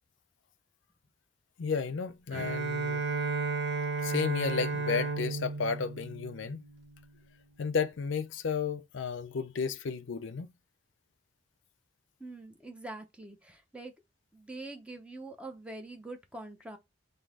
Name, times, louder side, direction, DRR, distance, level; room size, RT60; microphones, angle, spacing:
voice 1, 1.6-3.0 4.0-6.6 7.6-10.5, left 5 dB, 85° left, 0.5 m, -33 dB
Bowed string instrument, 2.3-7.0, right 4 dB, 60° right, 0.9 m, -33 dB
voice 2, 12.2-13.9 14.3-16.8, right 2 dB, 5° right, 0.6 m, -44 dB
3.9 x 2.7 x 3.6 m
head